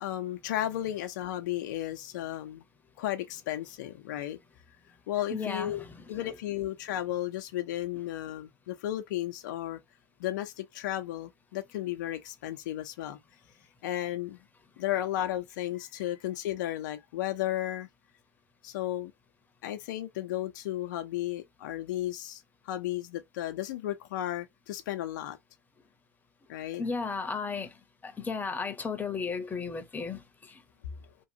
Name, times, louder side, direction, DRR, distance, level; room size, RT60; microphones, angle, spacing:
voice 1, 0.0-2.6 3.0-4.4 5.1-9.8 10.2-13.2 13.8-14.4 14.8-17.9 18.6-19.1 19.6-25.4 26.5-26.8, left 13 dB, 80° left, 0.6 m, -34 dB
voice 2, 5.3-6.3 26.8-27.8 28.0-30.6, left 5 dB, 20° left, 0.8 m, -35 dB
2.9 x 2.3 x 2.7 m
supercardioid pair, 100°, 10 cm